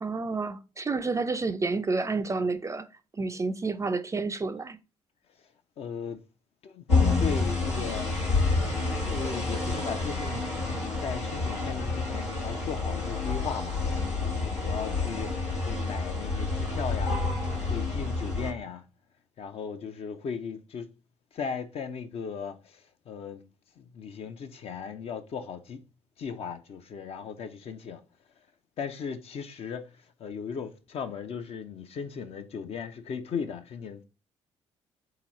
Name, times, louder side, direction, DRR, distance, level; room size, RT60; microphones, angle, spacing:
voice 1, 0.0-2.9 3.1-4.8, right 3 dB, 20° right, 0.4 m, -30 dB
voice 2, 5.8-6.2 6.6-6.8 7.2-10.6 11.0-13.8 14.2-15.4 15.7-17.2 17.7-18.8 19.4-20.9 21.3-23.4 23.8-25.8 26.2-28.0 28.8-34.0, left 6 dB, 45° left, 0.6 m, -37 dB
sound 1, 6.9-18.5, left 3 dB, 90° left, 1.2 m, -28 dB
3.8 x 2.9 x 3.9 m
figure-of-eight pair, 45°, 14 cm